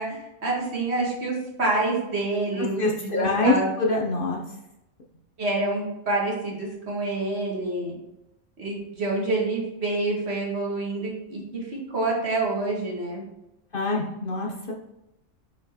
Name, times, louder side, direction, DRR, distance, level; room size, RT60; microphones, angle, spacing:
voice 1, 0.0-3.7 5.4-8.0 8.6-13.2, right 2 dB, 55° right, -3 dB, 1.9 m, -27 dB
voice 2, 2.8-4.4 13.7-14.7, left 2 dB, 45° left, -2 dB, 1.1 m, -25 dB
5.8 x 4.5 x 4.3 m, 0.90 s
omnidirectional pair, 1.3 m